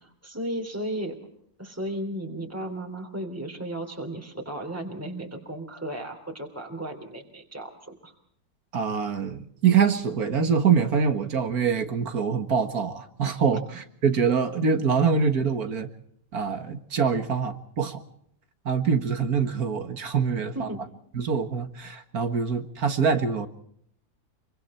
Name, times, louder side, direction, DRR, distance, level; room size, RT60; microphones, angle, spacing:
voice 1, 0.0-1.2 1.6-8.1 20.5-20.8, right 1 dB, 10° right, 3 dB, 3.1 m, -35 dB
voice 2, 8.7-13.6 14.0-15.9 16.3-18.0 18.7-20.7 21.1-23.5, right 6 dB, 75° right, 8 dB, 2.2 m, -24 dB
26.0 x 24.0 x 4.4 m, 0.68 s
omnidirectional pair, 1.6 m